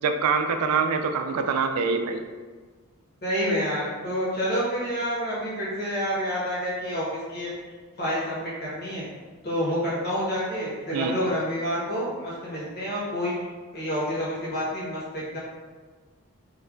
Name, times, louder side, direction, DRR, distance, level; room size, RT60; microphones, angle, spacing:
voice 1, 0.0-2.2 10.9-11.1, right 5 dB, 90° right, 6 dB, 0.3 m, -24 dB
voice 2, 3.2-7.5 8.0-9.0 9.4-13.3 13.7-15.4, equal, 45° left, -7 dB, 0.9 m, -28 dB
3.1 x 2.2 x 3.6 m, 1.4 s
head